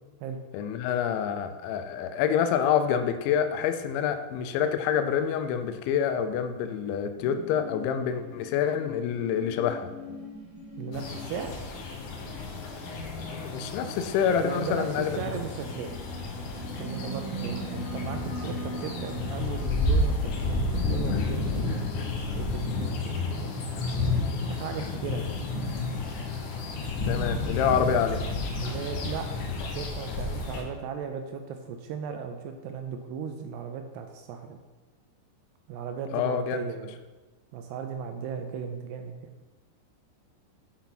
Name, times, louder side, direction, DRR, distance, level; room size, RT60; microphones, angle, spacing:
voice 1, 0.5-9.9 13.3-15.3 27.0-28.3 36.1-36.6, left 8 dB, 85° left, 8 dB, 3.0 m, -27 dB
sound 1, 7.2-21.8, equal, 15° right, 0.7 m, -43 dB
voice 2, 10.8-11.5 14.4-15.9 16.8-21.8 22.3-24.0 24.5-25.4 28.6-29.5 29.7-34.6 35.7-37.0 37.5-39.3, right 7 dB, 80° right, 6 dB, 2.5 m, -36 dB
sound 2, 10.9-30.6, left 3 dB, 65° left, 2.0 m, -31 dB
8.6 x 5.9 x 5.9 m, 1.2 s
omnidirectional pair, 5.2 m